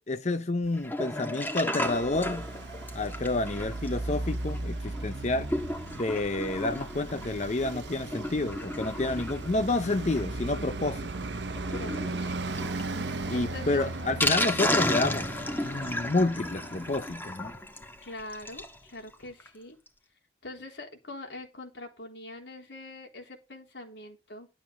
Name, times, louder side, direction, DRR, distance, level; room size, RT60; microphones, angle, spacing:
voice 1, 0.0-2.5 2.9-5.5 5.9-11.1 13.3-15.3 15.6-17.5, left 2 dB, 40° left, 0.7 m, -29 dB
Sink (filling or washing), 0.7-18.8 19.1-19.2 19.4-19.5 19.9-20.0, left 1 dB, 10° left, 1.6 m, -34 dB
Traffic noise roadway noise, 1.8-17.3, right 2 dB, 75° right, 0.9 m, -37 dB
voice 2, 11.7-12.6 13.3-13.8 18.0-19.8 20.4-24.5, left 2 dB, 85° left, 3.8 m, -43 dB
12.0 x 10.0 x 4.0 m
head